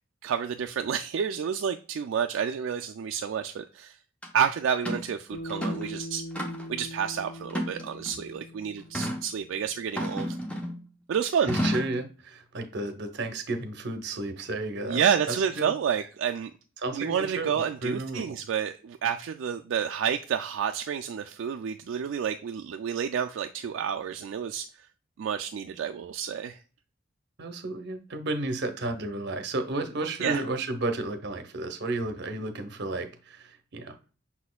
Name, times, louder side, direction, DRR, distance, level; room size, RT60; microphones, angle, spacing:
voice 1, 0.2-4.0 4.3-6.2 6.7-10.4 11.1-11.6 14.9-16.5 16.9-24.6 25.2-26.6 30.2-30.4, right 7 dB, 80° right, 0.3 m, -29 dB
sound 1, 4.2-4.3 4.9-5.1 5.5-5.9 6.4-6.8 7.5-8.2 8.9-9.2 10.0-10.8 11.5-12.0, equal, 5° left, 0.7 m, -31 dB
Bass guitar, 5.3-9.7, equal, 60° left, 2.4 m, -41 dB
voice 2, 11.5-15.0 15.6-15.7 16.8-17.5 17.8-18.2 27.4-33.9, right 2 dB, 60° right, 0.7 m, -32 dB
5.7 x 4.1 x 2.2 m
head